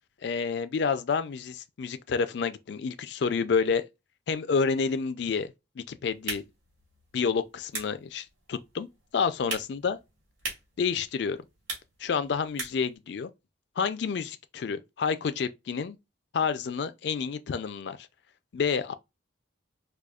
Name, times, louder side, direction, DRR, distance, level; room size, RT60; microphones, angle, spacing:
voice 1, 0.2-3.9 4.3-5.5 5.8-6.4 7.1-8.9 9.1-10.0 10.8-11.4 12.0-13.3 13.8-16.0 16.3-18.0 18.5-18.9, left 5 dB, 60° left, 0.4 m, -29 dB
sound 1, 6.1-13.0, right 3 dB, 85° right, 1.8 m, -41 dB
4.8 x 2.3 x 2.3 m
head